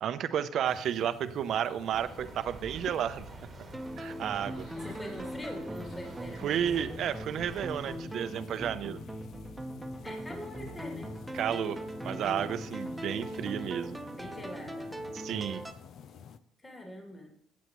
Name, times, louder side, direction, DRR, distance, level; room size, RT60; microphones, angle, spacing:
voice 1, 0.0-3.3 4.0-4.7 6.4-9.0 11.3-14.0 15.1-15.6, right 9 dB, 60° right, 12 dB, 0.6 m, -32 dB
sound 1, 0.7-16.4, left 7 dB, 60° left, 0.6 m, -49 dB
sound 2, 1.9-8.0, right 4 dB, 35° right, 1.2 m, -49 dB
sound 3, 3.7-15.7, right 1 dB, 10° right, 1.0 m, -40 dB
voice 2, 4.7-6.6 10.0-11.1 14.2-14.9 16.6-17.3, equal, 15° left, 1 dB, 2.7 m, -43 dB
14.5 x 8.2 x 3.1 m, 0.73 s
supercardioid pair, 80°, 0 cm